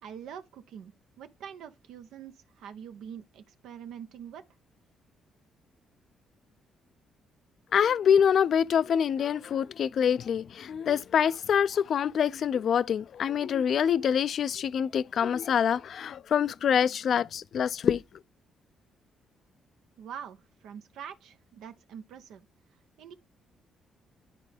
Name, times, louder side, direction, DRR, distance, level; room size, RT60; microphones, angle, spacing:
voice 1, 0.0-4.4 20.0-22.4 23.0-23.1, right 8 dB, 85° right, 0.6 m, -44 dB
voice 2, 7.7-18.0, left 8 dB, 60° left, 0.3 m, -25 dB
10.5 x 3.6 x 3.3 m
cardioid pair, 90°, 0 cm